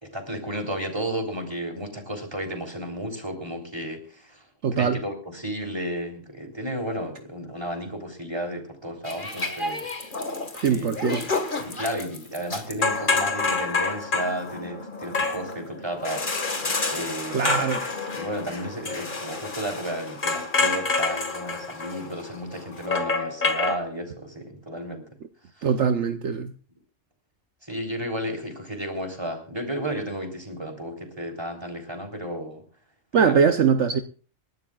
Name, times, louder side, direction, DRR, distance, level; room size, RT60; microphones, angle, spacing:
voice 1, 0.0-4.4 4.7-9.9 10.7-10.9 11.6-17.6 18.1-25.1 25.6-25.7 27.6-32.6 33.2-33.5, equal, 20° right, 4 dB, 3.7 m, -33 dB
voice 2, 4.6-5.0 10.5-11.2 17.3-17.8 25.6-26.5 33.1-34.0, right 6 dB, 70° right, 8 dB, 1.2 m, -22 dB
sound 1, 9.1-23.8, left 3 dB, 40° left, 2.0 m, -28 dB
27.5 x 12.5 x 2.4 m, 0.37 s
omnidirectional pair, 1.3 m